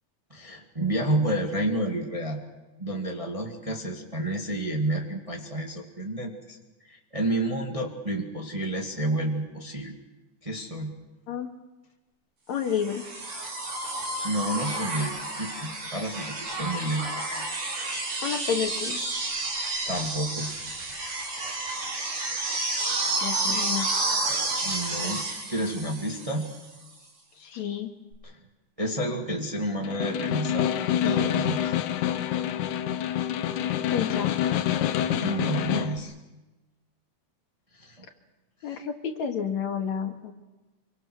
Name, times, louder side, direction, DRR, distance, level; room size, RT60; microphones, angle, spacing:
voice 1, 0.3-2.4 2.8-6.6 6.9-9.9 10.4-10.9 14.2-17.2 19.9-20.5 21.4-21.5 24.6-25.2 25.5-26.5 28.2-28.4 28.8-30.7 31.0-31.7 35.2-36.1 37.8-38.1 38.7-38.8, right 1 dB, 15° right, 1 dB, 1.8 m, -30 dB
voice 2, 11.3-11.6 12.5-13.0 18.2-19.0 23.2-23.9 27.4-27.9 33.9-34.3 38.6-40.3, left 7 dB, 70° left, 4 dB, 3.0 m, -30 dB
sound 1, 12.7-26.7 28.1-28.2, right 2 dB, 90° right, 6.2 m, -30 dB
Snare drum, 29.8-36.0, left 11 dB, 85° left, 2.4 m, -27 dB
25.5 x 24.0 x 6.2 m, 1.1 s
omnidirectional pair, 3.4 m